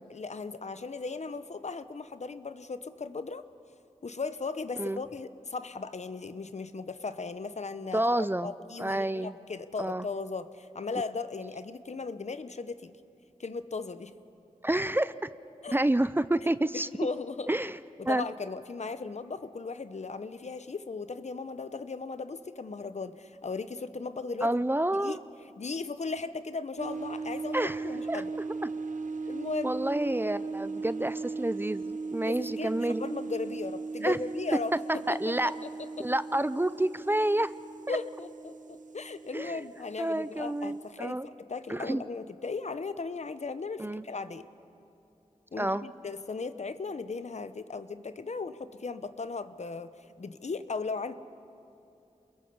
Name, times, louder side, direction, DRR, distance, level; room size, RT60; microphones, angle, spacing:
voice 1, 0.1-3.4 4.0-12.9 13.4-14.1 15.6-15.7 16.7-17.5 18.0-24.5 25.0-25.2 25.6-28.3 29.3-29.8 32.2-35.7 36.0-36.1 37.9-44.4 45.5-49.9 50.2-51.1, left 4 dB, 60° left, 12 dB, 0.8 m, -37 dB
voice 2, 7.9-8.5 8.8-9.3 9.8-10.1 14.6-15.3 15.7-16.9 17.5-17.8 18.1-18.2 24.4-25.2 27.5-28.2 29.6-33.1 34.0-34.2 34.9-35.6 36.0-37.5 37.9-38.0 39.3-39.6 40.0-41.3 41.7-42.0 43.8-44.0 45.6-45.9, right 1 dB, 15° right, 15 dB, 0.5 m, -29 dB
sound 1, 26.8-41.0, right 4 dB, 80° right, 0.7 m, -38 dB
28.0 x 21.5 x 5.5 m, 2.7 s
wide cardioid pair, 60°, 13 cm